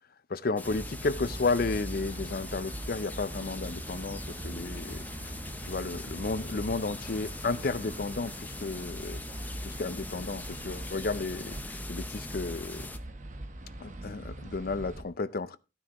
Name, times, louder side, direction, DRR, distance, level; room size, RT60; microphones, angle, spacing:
voice 1, 0.3-5.0 5.6-9.2 9.6-12.9 13.8-15.6, left 3 dB, 50° left, 0.5 m, -33 dB
sound 1, 0.6-13.0, left 2 dB, 10° left, 0.7 m, -43 dB
sound 2, 0.6-15.0, right 1 dB, 40° right, 1.1 m, -41 dB
14.5 x 9.7 x 3.0 m
head